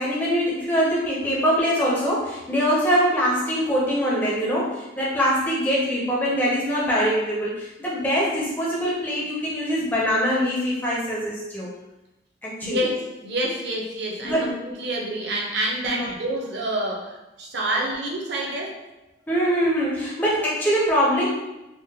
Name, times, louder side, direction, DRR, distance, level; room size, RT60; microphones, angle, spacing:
voice 1, 0.0-11.7 12.4-12.8 14.2-14.5 15.8-16.1 17.7-17.8 19.3-21.3, equal, 10° left, -6 dB, 0.5 m, -23 dB
voice 2, 12.6-13.0 13.2-18.8, right 1 dB, 60° right, -1 dB, 0.6 m, -28 dB
3.6 x 2.0 x 2.7 m, 0.98 s
head